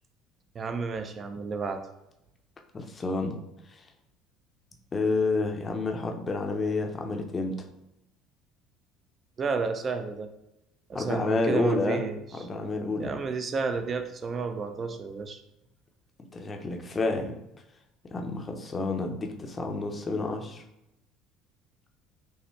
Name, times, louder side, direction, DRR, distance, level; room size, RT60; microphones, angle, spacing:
voice 1, 0.5-1.8 9.4-10.3 10.9-12.2 13.0-15.4, right 4 dB, 35° right, 7 dB, 0.5 m, -31 dB
voice 2, 2.7-3.4 3.7-3.9 4.9-7.6 10.9-12.0 12.4-13.1 16.3-17.4 18.1-20.6, left 3 dB, 30° left, 3 dB, 0.7 m, -29 dB
5.5 x 2.1 x 3.1 m, 0.87 s
supercardioid pair, 85°, 0 cm